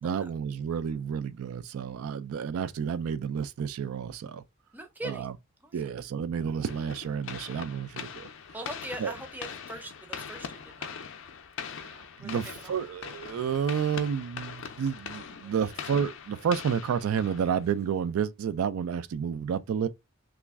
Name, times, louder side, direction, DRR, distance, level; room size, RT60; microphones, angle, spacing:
voice 1, 0.0-4.4 5.0-5.3 5.7-8.3 9.0-9.1 11.7-19.9, right 7 dB, 75° right, 0.3 m, -30 dB
voice 2, 4.7-5.3 5.6-5.8 8.5-11.0 12.2-12.4 12.6-12.8 15.4-15.7, right 1 dB, 10° right, 0.5 m, -41 dB
sound 1, 6.6-17.9, left 7 dB, 60° left, 0.4 m, -42 dB
3.0 x 2.4 x 3.4 m
head